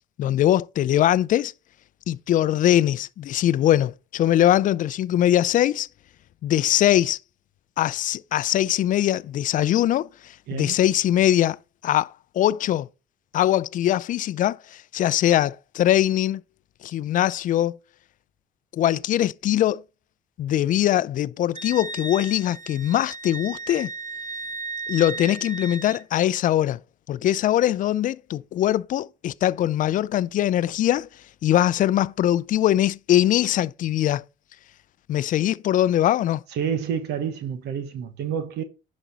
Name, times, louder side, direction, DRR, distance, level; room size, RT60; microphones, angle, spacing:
voice 1, 0.2-1.5 2.1-5.9 6.4-7.2 7.8-11.6 11.8-12.9 13.3-16.4 16.8-17.8 18.7-19.8 20.4-23.9 24.9-26.8 27.1-31.1 31.4-34.2 35.1-36.4, left 12 dB, 50° left, 0.4 m, -22 dB
Wind instrument woodwind instrument, 21.5-26.0, right 3 dB, 45° right, 1.3 m, -35 dB
voice 2, 36.5-38.6, right 8 dB, 80° right, 1.1 m, -28 dB
10.0 x 5.2 x 4.1 m
cardioid pair, 110°, 17 cm